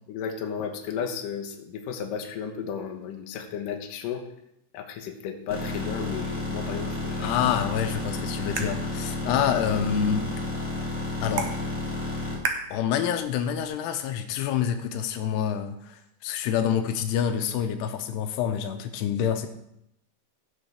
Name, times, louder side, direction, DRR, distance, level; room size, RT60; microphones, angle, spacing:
voice 1, 0.1-4.2 4.7-7.3, left 7 dB, 70° left, 3 dB, 2.4 m, -34 dB
sound 1, 5.5-12.4, left 2 dB, 5° right, 2.0 m, -31 dB
voice 2, 7.2-10.3 11.2-11.5 12.7-19.5, left 8 dB, 90° left, 7 dB, 2.9 m, -27 dB
sound 2, 7.7-13.7, right 5 dB, 70° right, 1.9 m, -38 dB
17.5 x 6.5 x 3.5 m, 0.79 s
omnidirectional pair, 4.6 m